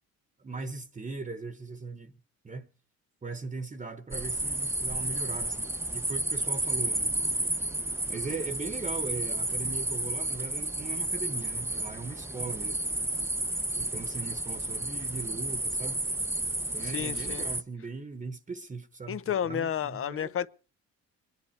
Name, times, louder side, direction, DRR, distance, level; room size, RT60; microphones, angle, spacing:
voice 1, 0.4-2.1 2.4-2.7 3.2-7.1 8.1-12.8 13.8-16.0 16.7-20.5, right 4 dB, 25° right, 1.2 m, -39 dB
sound 1, 4.1-17.6, right 2 dB, 10° right, 0.7 m, -32 dB
voice 2, 16.8-17.5 19.1-20.5, left 9 dB, 45° left, 0.8 m, -31 dB
22.5 x 10.5 x 4.5 m
cardioid pair, 90°, 30 cm